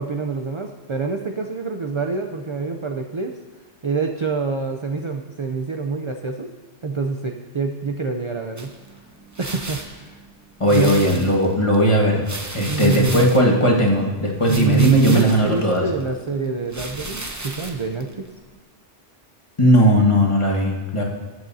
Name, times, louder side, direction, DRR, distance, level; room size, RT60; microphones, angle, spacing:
voice 1, 0.0-3.3 3.8-6.5 6.8-8.7 9.4-10.2 10.7-11.0 12.6-13.2 14.5-18.3, right 4 dB, 45° right, 4 dB, 0.4 m, -26 dB
sound 1, 8.6-18.6, right 2 dB, 15° right, 0.7 m, -36 dB
voice 2, 10.6-12.2 12.5-15.8 19.6-21.0, equal, 25° left, -2 dB, 1.5 m, -17 dB
20.0 x 7.8 x 2.7 m, 1.3 s
omnidirectional pair, 1.2 m